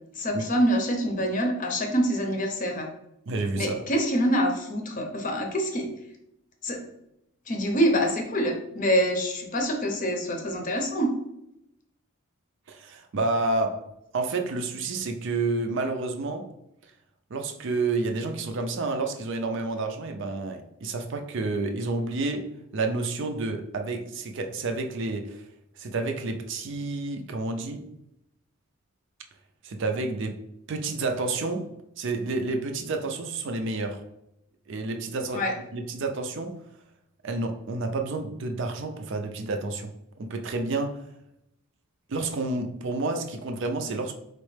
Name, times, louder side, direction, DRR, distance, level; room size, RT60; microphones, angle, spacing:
voice 1, 0.1-2.9 3.6-5.9 6.6-6.8 7.5-11.1 35.3-35.5, equal, 35° left, 0.7 m, -25 dB
voice 2, 3.3-3.8 12.7-13.9 14.1-16.5 17.3-25.4 25.8-27.9 29.6-30.4 30.7-34.0 34.7-35.4 35.7-36.6 37.2-39.9 40.2-41.0 42.1-44.1, right 3 dB, 55° right, 0.4 m, -30 dB
4.3 x 3.1 x 3.2 m
head